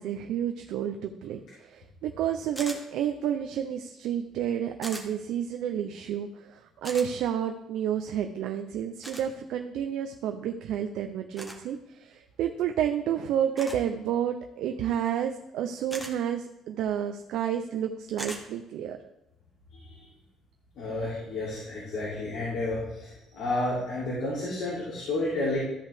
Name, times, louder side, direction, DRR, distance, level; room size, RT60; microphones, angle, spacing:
voice 1, 0.0-19.0, right 9 dB, 75° right, 5 dB, 0.5 m, -30 dB
sound 1, 2.6-2.8 4.8-5.1 6.8-7.1 9.0-9.3 11.4-11.6 13.6-13.8 15.9-16.1 18.2-18.4, right 1 dB, 5° left, 1.2 m, -38 dB
voice 2, 19.7-20.1 20.7-25.6, left 2 dB, 75° left, -7 dB, 2.9 m, -31 dB
13.5 x 5.4 x 3.5 m, 0.94 s
cardioid pair, 150°, 0 cm